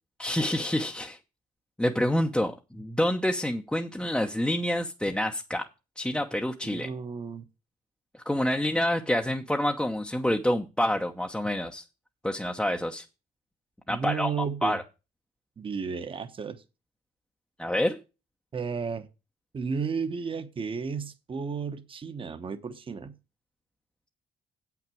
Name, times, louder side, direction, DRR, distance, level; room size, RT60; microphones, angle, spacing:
voice 1, 0.2-1.2 1.8-5.7 6.0-6.9 8.3-11.8 12.2-13.0 13.9-14.8 17.6-18.0, left 1 dB, 5° left, 0.9 m, -27 dB
voice 2, 6.6-7.4 13.9-14.8 15.6-16.6 18.5-19.1 19.5-23.1, right 5 dB, 30° right, 1.2 m, -33 dB
8.1 x 5.9 x 7.8 m
cardioid pair, 110°, 17 cm